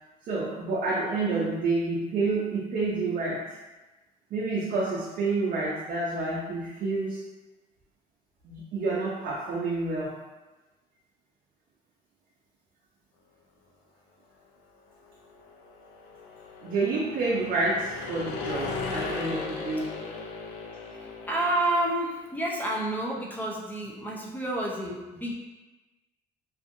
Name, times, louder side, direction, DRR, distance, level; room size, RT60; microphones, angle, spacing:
voice 1, 0.2-3.5 4.3-7.3 8.4-10.2 16.6-20.1, right 3 dB, 55° right, -6 dB, 0.6 m, -29 dB
sound 1, 15.1-22.0, left 4 dB, 85° left, 0.4 m, -37 dB
voice 2, 21.3-25.3, right 1 dB, 10° left, -3 dB, 0.5 m, -29 dB
2.6 x 2.4 x 2.5 m, 1.1 s
cardioid pair, 110°, 17 cm